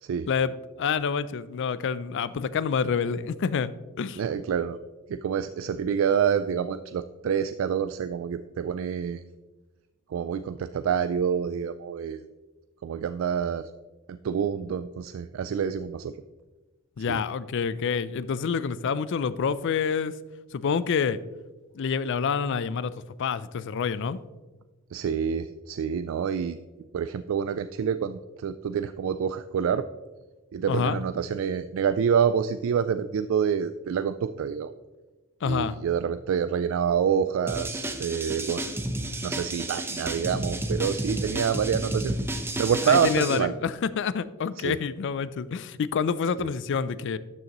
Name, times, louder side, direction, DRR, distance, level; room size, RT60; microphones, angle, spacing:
voice 1, 0.3-3.7 4.0-4.2 17.0-20.1 20.5-21.2 21.7-22.9 23.2-24.2 30.7-31.0 35.4-35.7 42.9-47.2, left 6 dB, 60° left, 16 dB, 0.4 m, -27 dB
voice 2, 4.2-4.8 5.1-9.2 10.1-12.2 12.8-13.7 14.1-16.1 17.1-17.2 24.9-26.6 26.9-29.9 30.5-34.7 35.5-38.6 39.2-43.5 44.6-44.8 46.4-46.5, right 7 dB, 70° right, 12 dB, 0.3 m, -27 dB
sound 1, 37.5-43.4, right 1 dB, 10° right, 0.7 m, -31 dB
12.0 x 6.5 x 3.0 m, 1.2 s
head